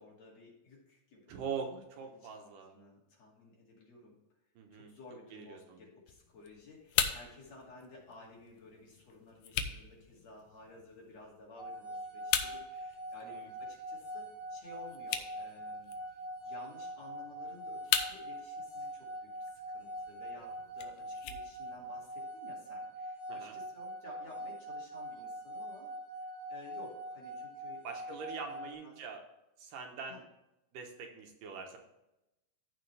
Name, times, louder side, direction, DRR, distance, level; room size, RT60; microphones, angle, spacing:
voice 1, 0.0-1.8 2.1-4.2 4.7-29.0 30.0-30.2, left 3 dB, 50° left, -3 dB, 3.3 m, -55 dB
voice 2, 1.3-2.8 4.6-4.9 5.3-5.8 13.3-13.4 23.3-23.6 27.8-29.2 29.6-30.2 30.7-31.8, right 6 dB, 70° right, 3 dB, 2.5 m, -43 dB
sound 1, 6.1-22.1, left 9 dB, 75° left, 1.8 m, -40 dB
sound 2, 11.6-28.7, right 1 dB, 25° left, 2.9 m, -43 dB
15.0 x 5.1 x 3.3 m, 0.92 s
omnidirectional pair, 4.2 m